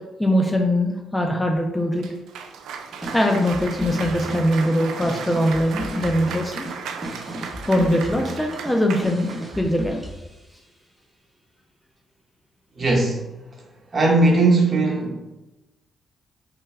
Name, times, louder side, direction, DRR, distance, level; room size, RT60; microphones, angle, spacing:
voice 1, 0.2-2.1 3.1-6.7 7.6-9.3 9.6-10.0, equal, 10° left, 1 dB, 0.4 m, -21 dB
Cheering / Applause, 2.0-9.7, right 6 dB, 85° right, 0.3 m, -35 dB
sound 1, 2.9-10.4, equal, 10° right, 0.8 m, -35 dB
voice 2, 12.8-13.3 13.9-15.2, right 2 dB, 35° right, -2 dB, 1.0 m, -18 dB
3.3 x 2.2 x 3.2 m, 1.0 s
cardioid pair, 70°, 0 cm